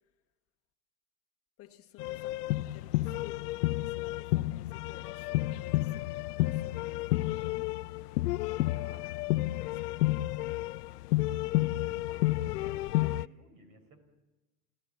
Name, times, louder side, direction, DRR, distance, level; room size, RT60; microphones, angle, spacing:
voice 1, 1.6-7.7 8.4-8.9 9.4-10.6, left 12 dB, 30° left, 1.3 m, -54 dB
sound 1, 2.0-13.3, left 17 dB, 75° left, 0.6 m, -31 dB
voice 2, 11.6-14.0, right 3 dB, 45° right, 4.8 m, -57 dB
26.0 x 15.0 x 7.2 m
supercardioid pair, 130°, 46 cm